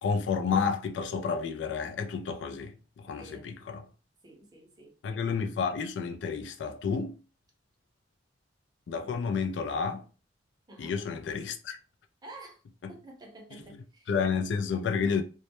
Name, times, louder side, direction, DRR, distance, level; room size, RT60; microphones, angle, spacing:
voice 1, 0.0-3.8 5.0-7.2 8.9-10.0 10.8-11.8 12.8-12.9 13.5-15.2, left 5 dB, 70° left, 0.3 m, -31 dB
voice 2, 3.1-3.5 4.2-5.0 10.7-11.0 12.2-12.6 12.9-14.1, right 2 dB, 20° right, 0.6 m, -49 dB
2.2 x 2.0 x 2.8 m
head